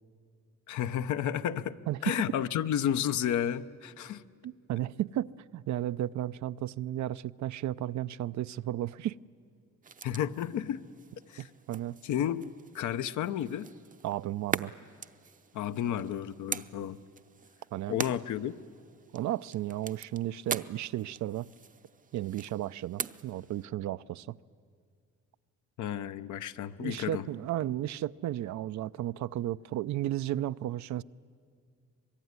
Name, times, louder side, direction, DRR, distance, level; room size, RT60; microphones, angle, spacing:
voice 1, 0.7-1.8 2.0-4.2 10.0-10.8 11.3-11.5 12.0-13.7 15.5-17.0 17.9-18.5 25.8-27.3, left 10 dB, 75° left, 0.9 m, -32 dB
voice 2, 1.9-2.2 4.4-9.2 11.4-12.0 14.0-14.7 17.7-18.0 19.1-21.5 22.1-24.4 26.8-31.0, right 13 dB, 70° right, 0.6 m, -34 dB
sound 1, 9.8-23.7, right 5 dB, 25° right, 0.7 m, -42 dB
25.0 x 21.5 x 9.6 m
cardioid pair, 90°, 30 cm